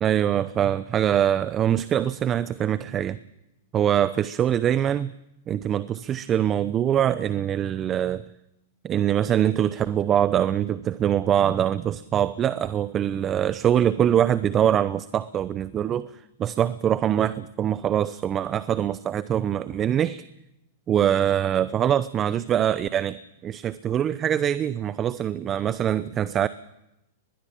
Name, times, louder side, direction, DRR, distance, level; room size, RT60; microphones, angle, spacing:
voice 1, 0.0-3.2 3.7-5.1 5.5-8.2 8.8-16.1 16.4-20.3 20.9-26.5, right 10 dB, 30° right, 16 dB, 0.8 m, -23 dB
24.5 x 21.0 x 7.5 m, 0.91 s
hypercardioid pair, 120°, 0 cm